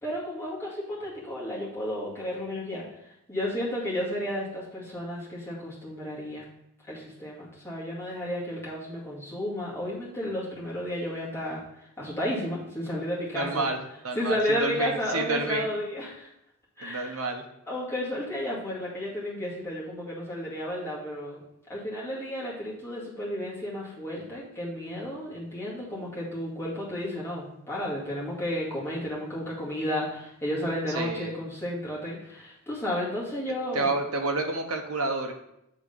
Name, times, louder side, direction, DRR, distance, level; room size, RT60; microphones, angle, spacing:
voice 1, 0.0-2.9 3.3-6.5 6.9-13.7 14.1-16.3 16.8-17.2 17.7-21.4 21.7-34.0, left 1 dB, 10° left, -6 dB, 2.0 m, -32 dB
voice 2, 13.3-13.8 14.0-15.7 16.8-17.4 30.9-31.3 33.7-35.3, right 3 dB, 75° right, 3 dB, 0.9 m, -29 dB
7.8 x 3.7 x 5.2 m, 0.81 s
head